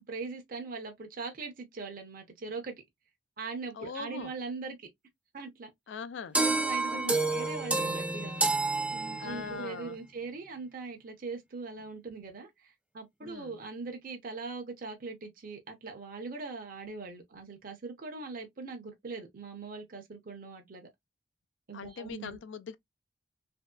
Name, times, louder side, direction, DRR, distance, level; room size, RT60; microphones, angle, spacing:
voice 1, 0.0-2.7 3.4-4.8 5.3-5.7 6.3-8.5 8.9-20.9 21.7-22.4, right 4 dB, 50° right, 0.7 m, -41 dB
voice 2, 3.7-4.3 5.9-6.4 6.9-7.3 9.2-10.0 13.2-13.6 21.7-22.8, left 6 dB, 75° left, 0.4 m, -41 dB
sound 1, 6.3-9.6, right 3 dB, 5° right, 0.5 m, -29 dB
3.0 x 2.7 x 2.2 m
head